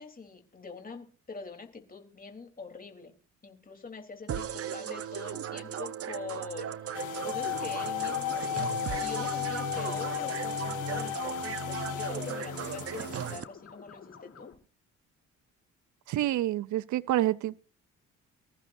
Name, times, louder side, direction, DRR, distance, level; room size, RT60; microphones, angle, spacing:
voice 1, 0.0-3.1 3.4-8.7 9.0-14.5, left 4 dB, 30° left, 3.5 m, -44 dB
sound 1, 4.3-13.4, right 9 dB, 50° right, 0.9 m, -37 dB
sound 2, 6.9-13.4, left 10 dB, 75° left, 1.7 m, -34 dB
sound 3, 8.3-14.6, left 6 dB, 50° left, 6.4 m, -51 dB
voice 2, 16.1-17.6, right 14 dB, 75° right, 0.6 m, -28 dB
25.0 x 15.0 x 2.6 m
cardioid pair, 90°, 30 cm